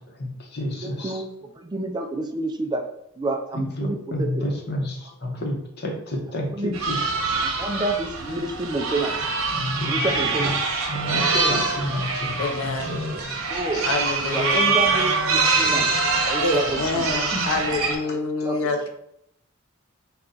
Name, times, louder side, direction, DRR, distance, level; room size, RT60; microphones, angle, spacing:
voice 1, 0.2-1.2 3.5-7.4 9.5-10.1 10.9-13.0 13.3-13.6 17.3-17.4, left 1 dB, 50° left, 1 dB, 0.8 m, -30 dB
voice 2, 0.8-2.8 3.2-4.4 6.5-6.8 7.4-9.2 9.9-10.5 11.1-11.7 13.5-13.9 14.3-15.9 16.3-17.1 18.1-18.6, right 2 dB, 20° right, 4 dB, 0.3 m, -29 dB
sound 1, 6.7-18.0, right 4 dB, 85° right, 0.8 m, -24 dB
voice 3, 12.4-12.9 13.7-14.8 16.4-18.9, left 3 dB, 85° left, 5 dB, 0.5 m, -26 dB
4.2 x 2.3 x 3.8 m, 0.76 s
head